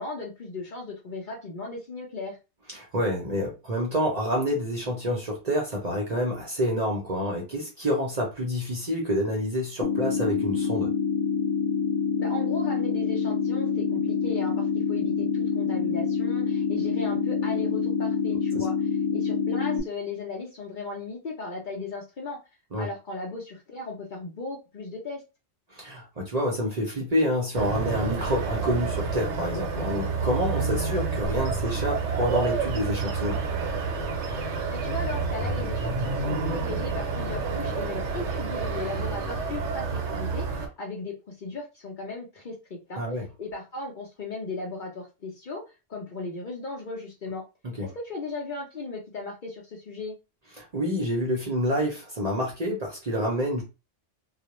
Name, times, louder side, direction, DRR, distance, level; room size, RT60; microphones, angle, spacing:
voice 1, 0.0-2.4 12.2-18.8 19.1-22.4 22.8-25.2 34.7-43.0 43.4-47.4 47.8-50.2, left 3 dB, 50° left, 0.7 m, -36 dB
voice 2, 2.7-10.9 18.5-18.6 22.7-22.9 25.7-33.4 43.0-43.2 47.6-47.9 50.6-53.6, equal, 40° right, 0.6 m, -28 dB
sound 1, 9.8-19.8, left 6 dB, 80° left, 0.9 m, -26 dB
sound 2, 27.5-40.7, right 4 dB, 75° right, 0.9 m, -29 dB
2.3 x 2.1 x 2.9 m
omnidirectional pair, 1.2 m